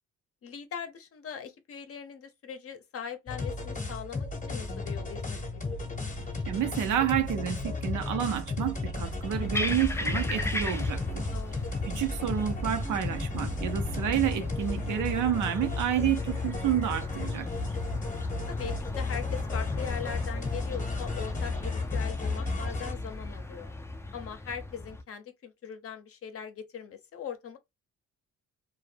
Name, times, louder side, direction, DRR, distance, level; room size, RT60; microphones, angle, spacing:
voice 1, 0.4-5.7 11.3-11.7 18.5-23.7 24.1-27.6, left 7 dB, 50° left, 0.6 m, -40 dB
sound 1, 3.3-22.9, left 3 dB, 25° left, 0.9 m, -34 dB
Bird vocalization bird call bird song, 5.6-15.4, right 4 dB, 40° right, 0.5 m, -47 dB
voice 2, 6.5-11.2 11.9-17.5, right 10 dB, 80° right, 0.6 m, -29 dB
sound 2, 9.0-25.0, left 2 dB, 10° left, 0.4 m, -36 dB
2.2 x 2.1 x 3.2 m
cardioid pair, 90°, 30 cm